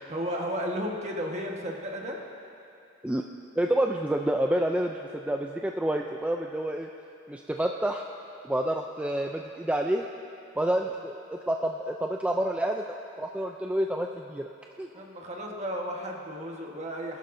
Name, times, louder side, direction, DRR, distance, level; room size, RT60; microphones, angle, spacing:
voice 1, 0.1-2.2 14.9-17.2, equal, 35° right, 0 dB, 1.3 m, -33 dB
voice 2, 3.6-6.9 7.3-8.1 8.4-10.0 10.6-14.4 14.8-14.9, right 1 dB, 5° right, 2 dB, 0.3 m, -28 dB
20.0 x 11.5 x 2.6 m, 2.8 s
head